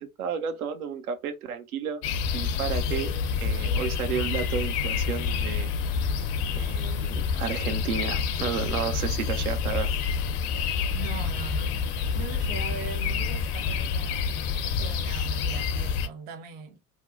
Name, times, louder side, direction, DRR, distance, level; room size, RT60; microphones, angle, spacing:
voice 1, 0.0-2.0 2.3-5.7 6.5-9.9, right 7 dB, 70° right, 0.6 m, -32 dB
sound 1, 2.0-16.1, left 6 dB, 45° left, 0.5 m, -28 dB
voice 2, 10.9-16.8, right 6 dB, 25° right, 0.3 m, -41 dB
2.5 x 2.0 x 2.5 m
figure-of-eight pair, 70°, 45 cm